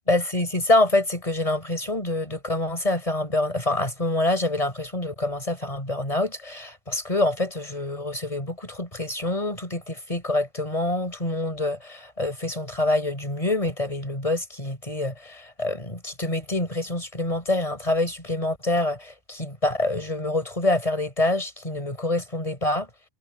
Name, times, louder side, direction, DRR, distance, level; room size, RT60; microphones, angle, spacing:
voice 1, 0.1-22.9, left 2 dB, 35° left, 6.3 m, -26 dB
omnidirectional pair, 1.1 m